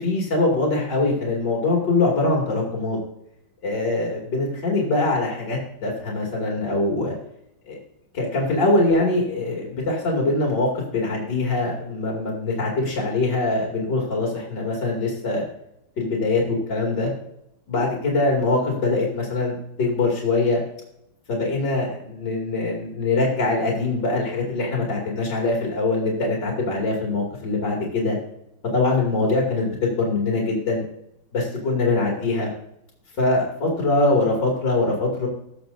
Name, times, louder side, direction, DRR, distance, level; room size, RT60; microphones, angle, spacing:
voice 1, 0.0-3.0 3.6-7.1 7.7-7.8 8.1-15.4 16.0-17.1 17.7-20.6 21.3-28.2 28.7-30.8 31.3-32.5 33.2-35.3, left 2 dB, 60° left, -3 dB, 3.1 m, -23 dB
18.5 x 6.8 x 2.7 m, 0.79 s
omnidirectional pair, 2.2 m